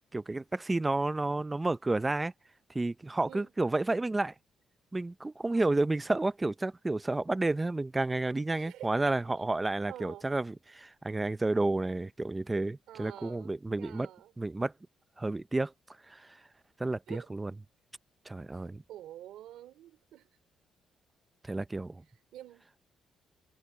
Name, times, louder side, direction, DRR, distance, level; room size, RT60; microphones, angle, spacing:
voice 1, 0.1-2.3 2.7-4.3 4.9-14.1 14.4-14.7 15.2-15.7 16.1-16.3 16.8-17.5 18.3-18.8 21.4-22.0, right 2 dB, 15° right, 0.8 m, -31 dB
voice 2, 8.5-9.1 9.9-10.3 12.9-14.3 17.1-17.3 18.5-20.3 22.3-22.7, right 12 dB, 85° right, 3.2 m, -48 dB
cardioid pair, 90°, 0 cm